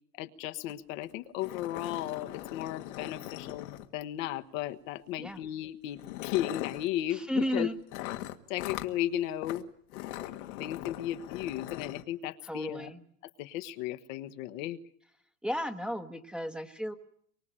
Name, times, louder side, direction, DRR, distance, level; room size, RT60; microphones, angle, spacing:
voice 1, 0.2-3.7 3.9-7.7 8.5-9.7 9.9-12.9 13.4-14.8, left 13 dB, 60° left, 9 dB, 1.4 m, -35 dB
sound 1, 0.7-0.8 1.0-1.1 1.4-4.2 5.2-5.4 5.9-6.9 7.9-8.9 9.4-9.6 9.9-12.0, left 15 dB, 75° left, 1.9 m, -40 dB
voice 2, 7.1-7.8 12.4-13.0 15.4-16.9, equal, ahead, 5 dB, 1.1 m, -34 dB
24.0 x 23.5 x 8.9 m, 0.64 s
supercardioid pair, 150°, 44 cm